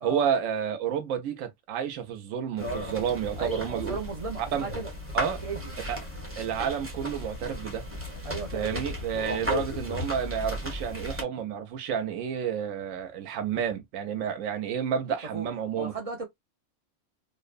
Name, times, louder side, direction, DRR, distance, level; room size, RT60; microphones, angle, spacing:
voice 1, 0.0-4.0 4.5-4.7 5.1-5.4 5.9-6.0 6.4-7.9 8.5-15.9, right 8 dB, 80° right, 1.0 m, -30 dB
sound 1, 2.6-11.2, equal, 10° right, 0.7 m, -35 dB
voice 2, 3.4-4.9 5.2-5.8 8.2-8.8 15.3-15.5 15.8-16.3, right 3 dB, 55° right, 0.4 m, -35 dB
2.8 x 2.1 x 2.4 m
omnidirectional pair, 1.4 m